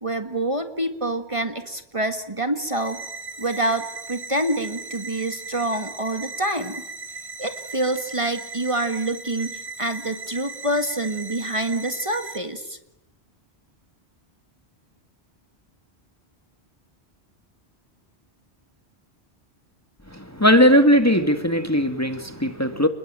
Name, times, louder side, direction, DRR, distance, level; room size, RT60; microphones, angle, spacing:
voice 1, 0.0-3.0 3.4-6.8 7.4-12.8, right 1 dB, 30° right, 7 dB, 1.9 m, -26 dB
sound 1, 2.7-12.4, right 4 dB, 70° right, 2.9 m, -37 dB
voice 2, 20.1-22.9, equal, 15° left, 8 dB, 1.9 m, -18 dB
29.0 x 22.0 x 9.0 m, 0.83 s
omnidirectional pair, 1.1 m